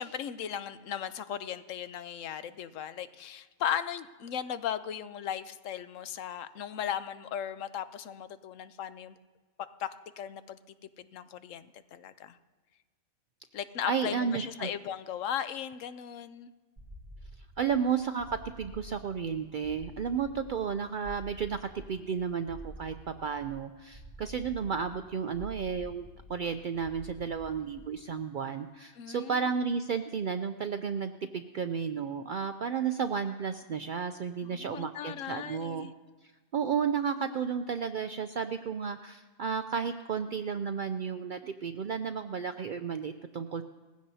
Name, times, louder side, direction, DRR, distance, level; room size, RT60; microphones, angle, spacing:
voice 1, 0.0-9.2 9.8-10.6 11.0-12.4 13.5-16.5 29.0-29.4 34.4-35.9, left 9 dB, 80° left, 12 dB, 1.0 m, -37 dB
voice 2, 13.9-14.7 17.6-18.3 18.6-35.9 36.5-43.6, right 6 dB, 65° right, 9 dB, 0.5 m, -33 dB
sound 1, 16.8-28.1, equal, 15° right, 1.9 m, -49 dB
20.0 x 15.5 x 2.7 m, 1.3 s
omnidirectional pair, 1.3 m